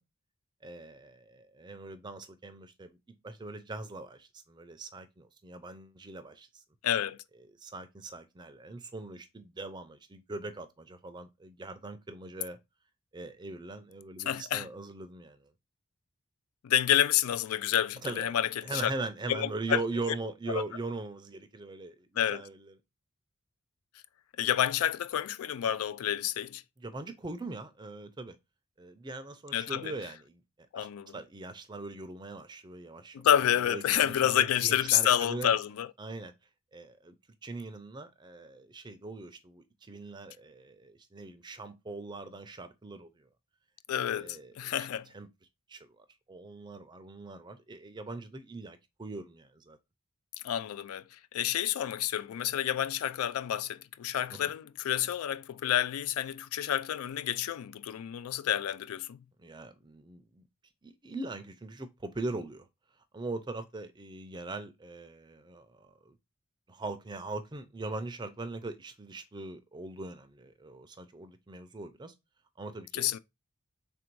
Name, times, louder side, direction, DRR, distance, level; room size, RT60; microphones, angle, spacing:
voice 1, 0.6-3.0 3.2-6.6 7.6-12.6 13.1-15.5 18.0-22.7 26.8-28.4 28.8-30.4 30.8-35.6 36.0-36.3 36.7-37.1 37.4-43.3 44.0-44.6 45.1-45.3 45.7-49.8 54.3-54.5 59.4-60.4 60.8-62.7 63.1-66.2 66.7-72.1 72.6-73.2, right 2 dB, 20° right, 0.4 m, -41 dB
voice 2, 6.8-7.2 14.3-14.7 16.6-18.9 19.3-19.8 22.2-22.4 24.4-26.6 29.5-29.9 30.7-31.1 33.1-35.9 43.9-45.1 50.4-51.0 51.3-59.2 72.9-73.2, left 10 dB, 85° left, 0.3 m, -29 dB
3.5 x 2.6 x 4.5 m
head